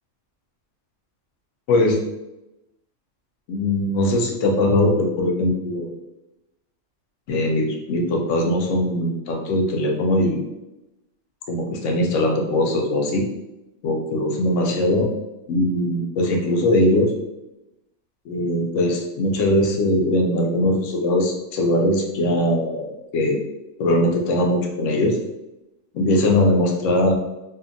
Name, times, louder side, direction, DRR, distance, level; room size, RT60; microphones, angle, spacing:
voice 1, 1.7-2.0 3.5-5.9 7.3-10.4 11.5-13.2 13.8-15.1 15.5-17.1 18.3-23.4 23.8-25.2 25.9-27.1, left 1 dB, 80° left, 2 dB, 0.9 m, -20 dB
2.7 x 2.5 x 2.4 m, 0.94 s
omnidirectional pair, 1.3 m